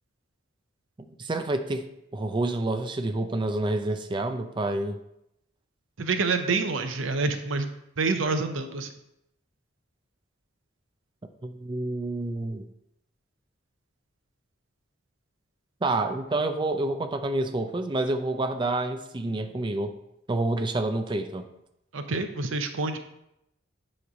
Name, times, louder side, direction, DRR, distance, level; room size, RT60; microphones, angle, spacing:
voice 1, 1.2-1.8 2.1-5.0 11.4-12.7 15.8-19.9 20.3-21.5, right 2 dB, 25° right, 6 dB, 0.5 m, -28 dB
voice 2, 6.0-7.7 8.0-8.9 21.9-23.0, right 3 dB, 80° right, 7 dB, 0.7 m, -27 dB
9.7 x 3.2 x 5.0 m, 0.82 s
head